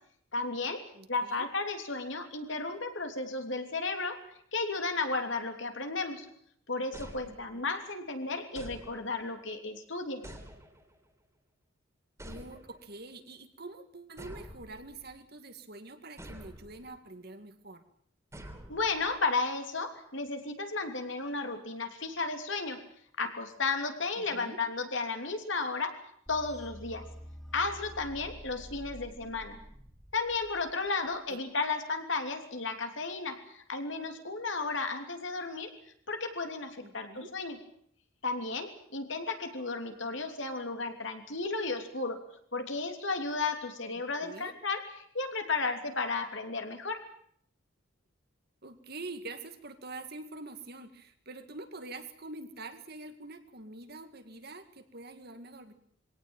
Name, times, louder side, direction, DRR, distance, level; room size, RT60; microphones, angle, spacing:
voice 1, 0.3-0.8 1.1-4.2 4.5-6.3 6.7-10.2 18.7-22.8 23.2-26.0 26.3-27.1 27.5-29.6 30.1-35.7 36.1-37.6 38.2-42.2 42.5-44.8 45.1-47.0, left 3 dB, 65° left, 5 dB, 3.2 m, -33 dB
voice 2, 0.9-1.5 7.2-7.7 12.2-17.8 24.2-24.6 31.3-31.4 36.8-37.3 44.2-44.5 48.6-55.7, right 2 dB, 50° right, 8 dB, 2.2 m, -45 dB
sound 1, 6.9-7.8 8.5-9.4 10.2-11.1 12.2-13.0 14.2-15.2 16.2-16.9 18.3-19.2, equal, 15° right, 3.4 m, -48 dB
sound 2, 26.3-31.2, equal, ahead, 3.2 m, -48 dB
22.5 x 17.5 x 9.0 m, 0.65 s
head